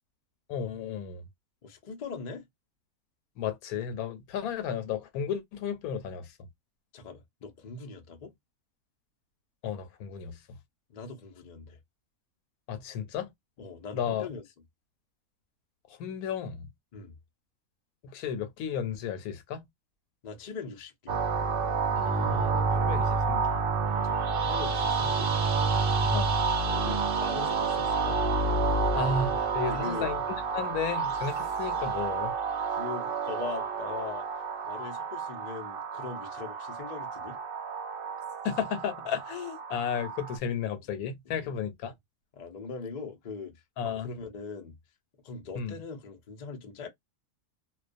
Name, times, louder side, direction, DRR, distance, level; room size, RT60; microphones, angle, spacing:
voice 1, 0.5-1.2 3.4-6.5 9.6-10.4 12.7-13.3 13.9-14.3 15.9-16.7 18.1-19.6 22.0-23.5 26.0-26.3 28.9-30.2 30.5-32.3 38.4-41.9 43.8-44.1 45.6-45.7, left 7 dB, 85° left, 1.1 m, -33 dB
voice 2, 1.6-2.4 6.9-8.3 10.9-11.8 13.6-14.4 16.9-17.2 20.2-21.2 24.0-25.4 26.6-28.2 29.7-30.1 32.7-34.2 34.6-37.4 41.4-41.5 42.3-43.5 43.8-44.7 45.2-46.9, left 5 dB, 60° left, 0.4 m, -41 dB
sound 1, 21.1-40.4, right 4 dB, 70° right, 0.5 m, -29 dB
2.3 x 2.2 x 2.5 m
omnidirectional pair, 1.5 m